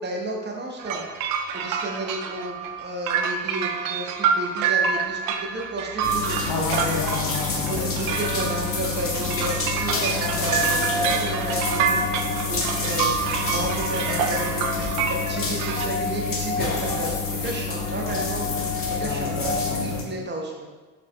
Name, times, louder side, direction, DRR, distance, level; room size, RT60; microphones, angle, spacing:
voice 1, 0.0-6.7 7.6-12.0 12.5-13.1 13.4-20.7, right 1 dB, 20° right, 0 dB, 0.8 m, -32 dB
sound 1, 0.8-15.9, right 6 dB, 45° right, 0.5 m, -27 dB
sound 2, 6.0-20.0, left 4 dB, 30° left, 0.9 m, -28 dB
voice 2, 6.5-7.9 19.0-20.2, left 4 dB, 60° left, 2 dB, 0.7 m, -30 dB
sound 3, 9.9-13.0 13.9-19.8, left 2 dB, 10° left, 0.5 m, -32 dB
4.9 x 4.8 x 2.2 m, 1.3 s
figure-of-eight pair, 55°, 48 cm